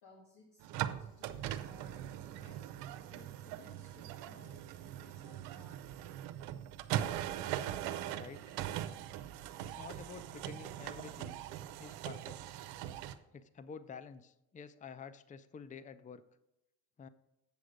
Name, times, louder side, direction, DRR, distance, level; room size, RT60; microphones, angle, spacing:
voice 1, 0.0-2.7 3.1-6.1, left 3 dB, 65° left, -2 dB, 1.8 m, -61 dB
sound 1, 0.6-13.1, right 11 dB, 85° right, 0.7 m, -41 dB
voice 2, 8.1-8.6 9.6-11.4 11.8-12.4 13.3-16.2 17.0-17.1, left 6 dB, 20° left, 14 dB, 0.5 m, -50 dB
8.3 x 6.3 x 5.0 m, 0.91 s
supercardioid pair, 75°, 40 cm